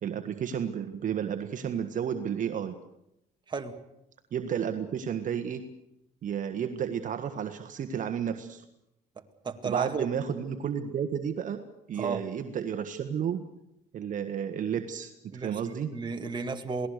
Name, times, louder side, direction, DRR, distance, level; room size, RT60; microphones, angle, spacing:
voice 1, 0.0-2.7 4.3-5.6 6.2-8.6 9.6-11.6 11.9-13.4 13.9-15.9, right 8 dB, 50° right, 7 dB, 1.5 m, -32 dB
voice 2, 9.4-10.1 12.0-12.2 15.3-16.9, right 5 dB, 25° right, 5 dB, 2.1 m, -33 dB
28.0 x 18.5 x 6.7 m, 0.83 s
cardioid pair, 110°, 17 cm